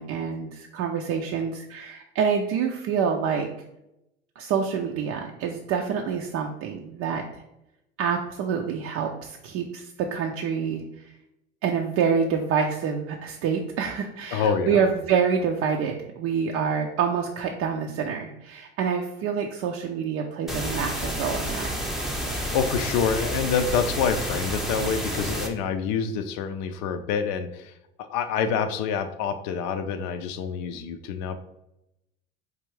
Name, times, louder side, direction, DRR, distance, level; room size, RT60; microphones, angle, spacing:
voice 1, 0.0-3.5 4.4-7.4 8.0-11.1 11.6-21.7, right 6 dB, 45° right, 1 dB, 0.5 m, -27 dB
voice 2, 14.3-14.8 22.3-31.4, left 6 dB, 55° left, 9 dB, 0.5 m, -27 dB
sound 1, 20.5-25.5, equal, ahead, 0.6 m, -30 dB
4.7 x 2.5 x 3.1 m, 0.86 s
hypercardioid pair, 70°, 34 cm